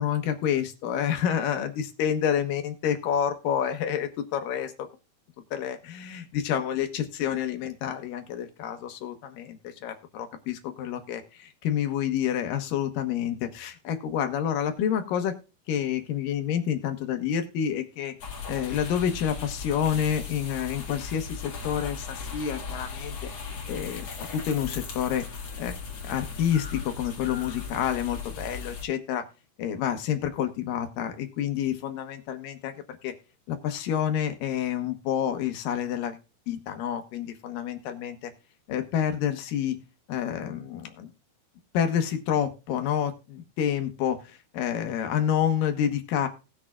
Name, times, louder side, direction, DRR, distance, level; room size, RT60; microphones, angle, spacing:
voice 1, 0.0-4.9 5.5-15.3 15.7-18.2 18.5-23.3 23.7-25.3 25.6-25.7 26.0-29.2 29.6-32.7 33.0-33.1 33.5-36.2 36.5-38.3 38.7-39.8 40.1-41.1 41.7-46.3, left 9 dB, 85° left, 7 dB, 2.8 m, -28 dB
sound 1, 18.2-28.9, left 5 dB, 55° left, 2.9 m, -37 dB
19.0 x 6.7 x 2.4 m, 0.32 s
omnidirectional pair, 3.8 m